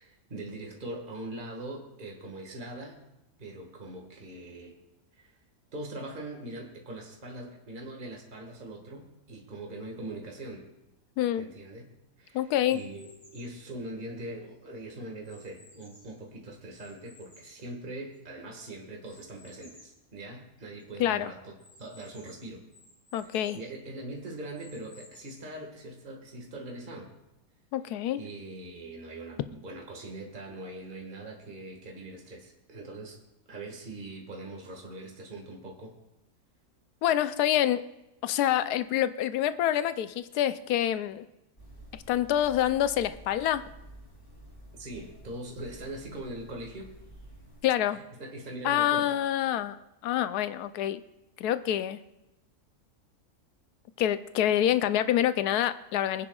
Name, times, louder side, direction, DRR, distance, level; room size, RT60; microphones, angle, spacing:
voice 1, 0.0-3.0 3.4-4.8 5.2-5.3 5.7-10.7 11.4-22.6 23.2-27.1 28.1-33.2 33.5-36.0 44.8-46.9 47.9-49.2, right 1 dB, 30° right, 1 dB, 1.8 m, -42 dB
voice 2, 12.3-12.8 21.0-21.3 23.1-23.6 27.7-28.2 37.0-37.8 38.2-41.2 42.1-43.6 47.6-48.0 48.6-49.8 50.0-51.0 51.4-52.0 54.0-56.3, left 11 dB, 80° left, 13 dB, 1.1 m, -26 dB
sound 1, 12.6-13.6 14.2-16.2 16.7-18.4 19.0-20.0 20.5-20.6 20.8-20.9 21.6-23.7 24.2-25.6, left 1 dB, 55° left, 3.8 m, -57 dB
sound 2, 41.6-47.6, equal, 35° left, 3.1 m, -50 dB
24.0 x 9.6 x 2.4 m, 0.95 s
omnidirectional pair, 1.7 m